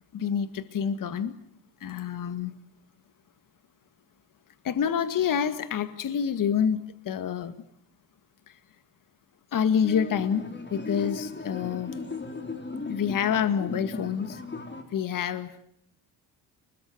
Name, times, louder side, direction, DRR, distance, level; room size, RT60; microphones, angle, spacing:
voice 1, 0.1-1.4 1.8-2.5 4.6-7.5 8.5-8.6 9.5-12.0 12.9-14.4 14.9-15.6, left 8 dB, 50° left, 11 dB, 2.0 m, -27 dB
sound 1, 9.8-14.8, left 3 dB, 25° left, 5.2 m, -37 dB
30.0 x 21.5 x 8.0 m, 0.70 s
cardioid pair, 100°, 41 cm